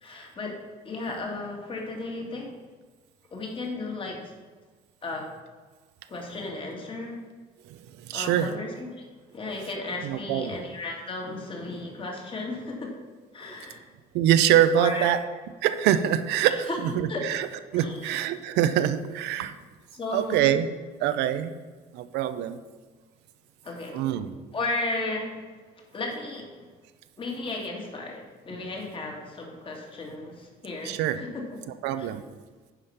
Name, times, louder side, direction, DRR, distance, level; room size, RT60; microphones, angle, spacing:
voice 1, 0.0-0.5 0.8-2.5 3.3-4.3 5.0-5.3 6.1-7.2 8.1-8.9 9.3-12.9 13.3-13.8 14.8-15.1 16.5-16.8 17.1-17.4 17.7-18.2 19.9-20.4 23.6-24.0 24.5-25.3 25.9-26.5 27.2-31.4 32.0-32.1, left 2 dB, 30° left, 0 dB, 2.1 m, -34 dB
voice 2, 8.0-8.5 10.0-10.6 14.1-15.2 15.6-17.5 17.7-19.5 20.1-20.7 21.0-21.5 21.9-22.6 23.9-24.4 30.8-31.2 31.8-32.2, right 10 dB, 90° right, 10 dB, 0.6 m, -24 dB
9.8 x 5.1 x 5.6 m, 1.4 s
cardioid pair, 110°, 17 cm